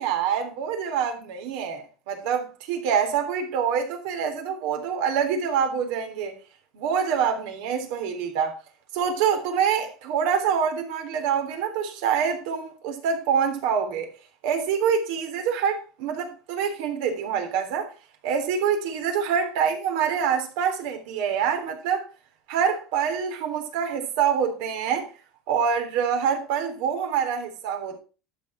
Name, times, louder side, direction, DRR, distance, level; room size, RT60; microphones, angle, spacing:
voice 1, 0.0-6.3 6.7-8.6 8.9-14.1 14.4-17.9 18.2-22.1 22.5-25.1 25.5-28.0, right 7 dB, 80° right, 3.5 m, -26 dB
12.0 x 7.2 x 4.3 m
cardioid pair, 135°, 0 cm